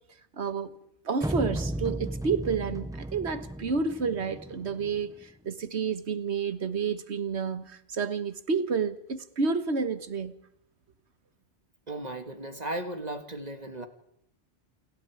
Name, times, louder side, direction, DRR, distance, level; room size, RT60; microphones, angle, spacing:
voice 1, 0.4-0.7 1.0-10.3, right 5 dB, 90° right, 1.7 m, -30 dB
sound 1, 1.2-5.2, right 1 dB, 5° right, 0.7 m, -35 dB
voice 2, 11.9-13.9, right 1 dB, 40° right, 2.0 m, -36 dB
29.0 x 21.0 x 4.8 m
omnidirectional pair, 1.1 m